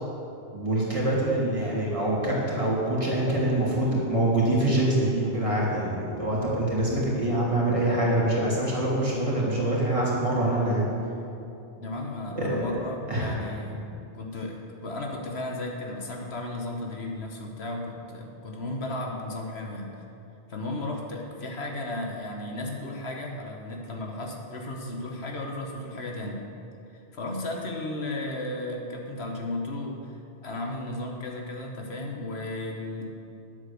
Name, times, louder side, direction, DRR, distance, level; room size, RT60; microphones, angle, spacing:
voice 1, 0.5-10.9 12.4-12.7 13.1-13.7, right 1 dB, 30° right, -5 dB, 2.6 m, -25 dB
voice 2, 11.8-13.8 14.1-20.0 20.5-26.4 26.9-33.1, left 2 dB, 75° left, 1 dB, 1.6 m, -34 dB
9.8 x 7.9 x 7.0 m, 2.6 s
omnidirectional pair, 1.1 m